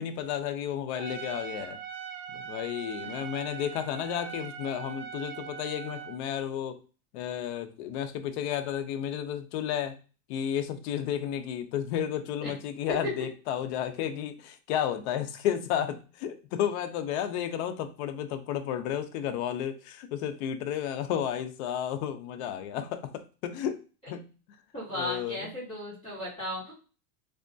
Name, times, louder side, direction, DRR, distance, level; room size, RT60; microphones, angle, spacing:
voice 1, 0.0-1.8 2.3-6.8 7.1-10.0 10.3-23.8 24.1-24.3 24.9-25.5, left 9 dB, 45° left, 0.5 m, -32 dB
Trumpet, 1.0-6.2, right 7 dB, 75° right, 0.9 m, -41 dB
voice 2, 24.7-26.7, left 1 dB, 10° left, 1.8 m, -36 dB
3.4 x 3.0 x 2.6 m
supercardioid pair, 155°, 49 cm